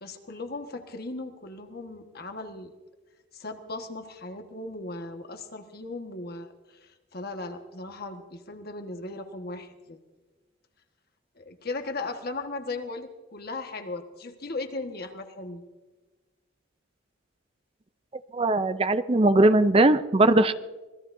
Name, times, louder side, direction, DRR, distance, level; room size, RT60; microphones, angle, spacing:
voice 1, 0.0-2.7 3.3-10.0 11.3-15.6, left 2 dB, 50° left, 5 dB, 1.5 m, -37 dB
voice 2, 18.3-20.5, right 2 dB, 30° right, 12 dB, 0.5 m, -20 dB
26.0 x 20.0 x 2.7 m, 1.2 s
head